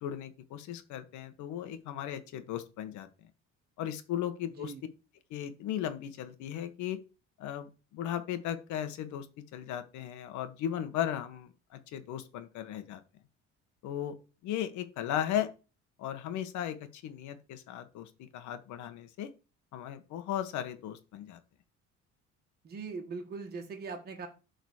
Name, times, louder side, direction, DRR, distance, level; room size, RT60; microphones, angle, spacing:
voice 1, 0.0-3.1 3.8-4.7 5.3-7.0 7.4-13.0 13.8-14.1 14.4-15.5 16.0-19.3 19.7-21.4, left 10 dB, 75° left, 9 dB, 1.4 m, -36 dB
voice 2, 22.6-24.3, right 4 dB, 30° right, 3 dB, 1.6 m, -40 dB
11.5 x 4.0 x 6.5 m, 0.33 s
cardioid pair, 170°, 30 cm